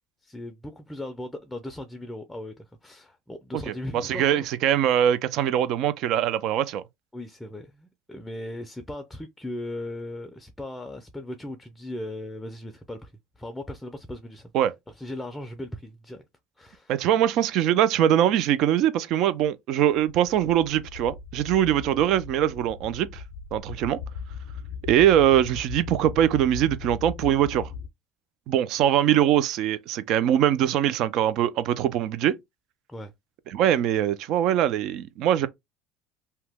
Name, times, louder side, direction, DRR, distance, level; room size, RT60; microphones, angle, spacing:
voice 1, 0.2-4.4 7.1-14.5 15.0-16.2 16.6-17.0 21.9-22.0 32.9-33.1, left 1 dB, 10° left, 0.4 m, -38 dB
voice 2, 3.7-6.8 14.5-14.7 16.9-23.2 23.5-24.0 24.8-27.7 28.5-32.4 33.5-35.5, right 11 dB, 60° right, 0.4 m, -22 dB
sound 1, 19.9-27.9, left 6 dB, 80° left, 0.4 m, -39 dB
2.8 x 2.1 x 3.4 m
supercardioid pair, 110°, 0 cm